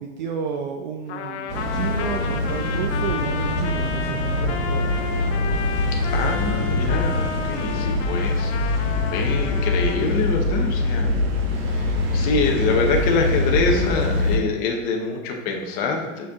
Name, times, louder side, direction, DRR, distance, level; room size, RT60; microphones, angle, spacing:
voice 1, 0.0-1.5 1.7-4.9, right 6 dB, 40° right, 3 dB, 0.4 m, -31 dB
Trumpet, 1.1-10.1, left 7 dB, 60° left, 0.7 m, -32 dB
sound 1, 1.5-14.4, left 2 dB, 85° right, 1.7 m, -23 dB
voice 2, 6.1-11.2 11.5-16.3, left 4 dB, 20° left, 1 dB, 0.7 m, -25 dB
7.6 x 4.4 x 3.5 m, 1.1 s
supercardioid pair, 160°, 39 cm